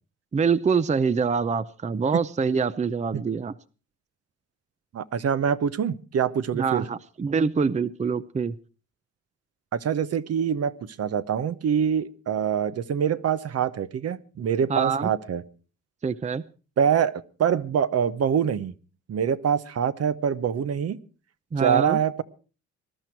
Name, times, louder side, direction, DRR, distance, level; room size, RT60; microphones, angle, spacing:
voice 1, 0.3-3.5 6.5-8.5 14.7-15.1 16.0-16.4 21.5-22.0, right 5 dB, 25° right, 16 dB, 0.6 m, -25 dB
voice 2, 4.9-6.8 9.7-15.4 16.8-17.1 17.4-18.7 19.1-21.0 21.6-22.2, right 8 dB, 55° right, 14 dB, 1.0 m, -25 dB
20.5 x 12.0 x 4.6 m, 0.36 s
cardioid pair, 90°, 30 cm